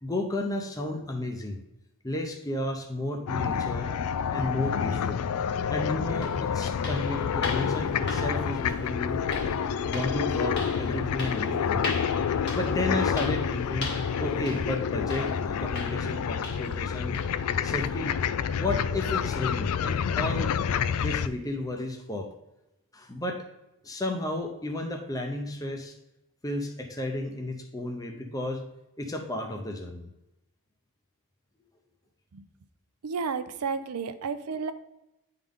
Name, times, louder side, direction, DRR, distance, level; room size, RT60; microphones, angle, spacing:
voice 1, 0.0-1.6 2.0-3.9 4.3-5.2 5.7-9.2 9.8-12.0 12.5-13.9 14.2-17.2 17.6-18.2 18.6-20.5 21.0-22.3 22.9-23.4 23.8-26.0 26.4-28.7 29.0-30.1, left 1 dB, 15° left, 3 dB, 0.6 m, -33 dB
sound 1, 3.3-21.3, left 7 dB, 80° left, 0.3 m, -28 dB
sound 2, 5.6-5.7 6.2-16.9 17.1-17.4 17.8-18.0 18.5-18.6 19.1-19.2, left 2 dB, 50° left, 1.4 m, -40 dB
voice 2, 33.0-34.7, right 5 dB, 90° right, 10 dB, 0.5 m, -32 dB
9.7 x 3.8 x 3.6 m, 0.93 s
head